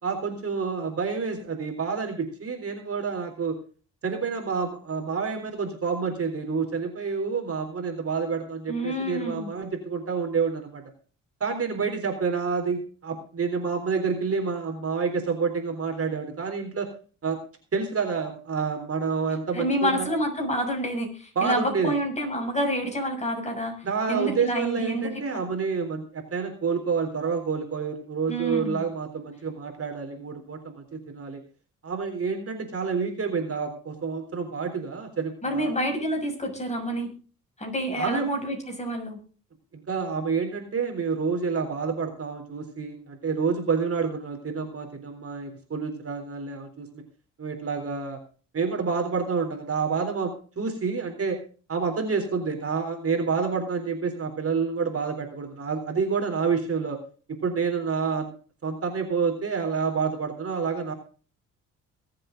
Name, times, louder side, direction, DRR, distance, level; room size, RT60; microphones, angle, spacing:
voice 1, 0.0-3.6 4.0-10.8 11.4-16.9 17.2-17.4 17.7-20.1 21.4-22.0 23.8-31.4 31.8-35.7 38.0-38.3 39.7-47.0 47.4-48.2 48.5-51.4 51.7-57.0 57.3-58.3 58.6-60.9, right 5 dB, 45° right, 4 dB, 3.7 m, -28 dB
voice 2, 8.7-9.5 19.5-25.4 28.3-28.8 35.4-37.1 37.6-39.2, equal, 20° left, 2 dB, 6.4 m, -28 dB
23.0 x 7.8 x 3.8 m, 0.39 s
cardioid pair, 80°, 32 cm